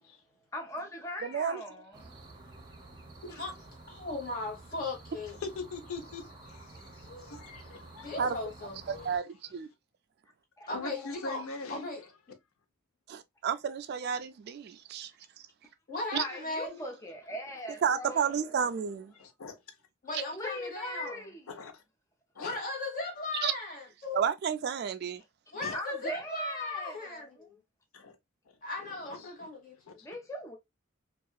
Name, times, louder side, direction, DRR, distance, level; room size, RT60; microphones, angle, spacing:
voice 1, 0.5-2.1 3.3-3.4 10.6-10.7 11.0-11.1 16.2-18.5 20.3-21.5 25.7-27.5 30.0-30.6, equal, 15° left, 0.4 m, -40 dB
voice 2, 1.2-1.6 8.2-8.4 8.9-9.2 9.5-9.7 13.1-15.1 16.1-16.2 17.8-19.1 23.4-23.5 24.1-25.2, right 7 dB, 50° right, 0.3 m, -31 dB
sound 1, 1.9-9.2, right 2 dB, 20° right, 0.7 m, -51 dB
voice 3, 3.2-3.6 3.9-5.4 8.0-8.8 10.7-12.0 15.9-16.8 20.0-21.2 22.4-24.2 25.5-27.6 28.6-30.0, left 2 dB, 40° left, 1.2 m, -37 dB
voice 4, 5.4-8.1 8.9-9.3 10.7-12.1 19.2-19.6 21.5-21.8 22.3-22.6 25.6-25.7 27.9-28.2 28.5-29.5 29.9-30.1, left 3 dB, 80° left, 0.6 m, -43 dB
2.7 x 2.3 x 2.2 m
head